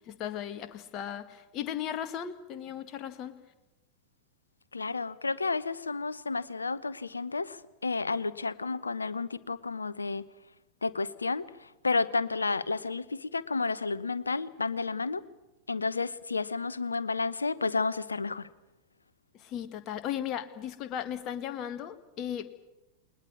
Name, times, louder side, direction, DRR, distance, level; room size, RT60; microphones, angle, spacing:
voice 1, 0.0-3.4 19.3-22.7, left 10 dB, 35° left, 10 dB, 1.9 m, -36 dB
voice 2, 4.7-10.3 10.8-15.2 15.7-18.5, left 4 dB, 75° left, 18 dB, 0.9 m, -31 dB
20.5 x 20.5 x 9.6 m, 1.0 s
figure-of-eight pair, 90°, 0 cm